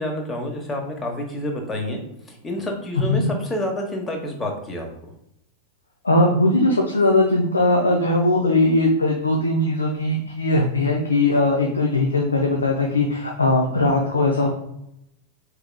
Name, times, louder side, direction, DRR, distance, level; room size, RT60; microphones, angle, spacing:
voice 1, 0.0-2.0 2.3-4.9, left 1 dB, 15° left, 2 dB, 0.9 m, -28 dB
voice 2, 6.0-14.5, left 2 dB, 80° left, 0 dB, 0.5 m, -19 dB
4.6 x 3.2 x 2.2 m, 0.80 s
figure-of-eight pair, 90°, 0 cm